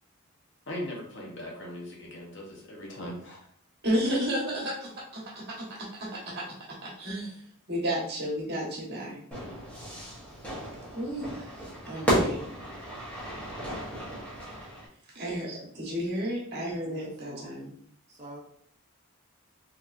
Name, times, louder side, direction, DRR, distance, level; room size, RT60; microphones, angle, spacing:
voice 1, 0.7-3.4, left 1 dB, 55° left, 0 dB, 0.8 m, -39 dB
voice 2, 3.8-9.2 10.9-11.5 11.9-12.4 15.1-17.7, equal, 50° right, -3 dB, 1.2 m, -32 dB
Fire / Fireworks, 9.3-14.9, right 1 dB, 5° left, 0.9 m, -33 dB
voice 3, 16.8-17.6 18.1-18.4, right 2 dB, 30° right, -2 dB, 0.8 m, -47 dB
3.7 x 2.9 x 2.4 m, 0.63 s
head